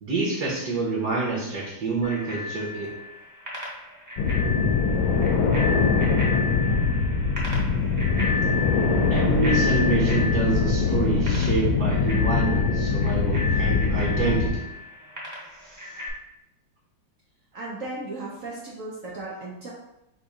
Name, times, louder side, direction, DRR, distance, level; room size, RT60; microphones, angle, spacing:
voice 1, 0.0-2.9 9.1-14.7 15.6-16.0, right 3 dB, 55° right, -4 dB, 1.3 m, -27 dB
Bicycle bell, 2.0-16.1, left 3 dB, 15° right, 0.6 m, -33 dB
sound 1, 4.2-14.5, left 5 dB, 75° left, 1.3 m, -23 dB
voice 2, 17.5-19.7, right 2 dB, 80° right, -4 dB, 0.7 m, -36 dB
4.1 x 2.6 x 4.8 m, 0.87 s
omnidirectional pair, 2.3 m